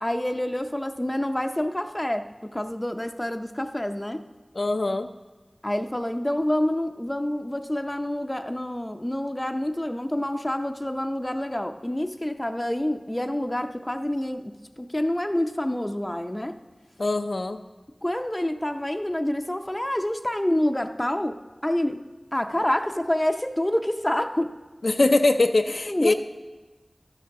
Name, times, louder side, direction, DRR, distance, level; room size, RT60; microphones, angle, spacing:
voice 1, 0.0-4.2 5.6-16.6 18.0-21.4 21.6-22.0 22.3-24.5 25.9-26.1, left 1 dB, 20° left, 6 dB, 0.5 m, -27 dB
voice 2, 4.5-5.1 17.0-17.6 24.8-26.1, left 2 dB, 80° left, 6 dB, 0.4 m, -22 dB
12.0 x 10.5 x 3.6 m, 1.2 s
wide cardioid pair, 40°, 0 cm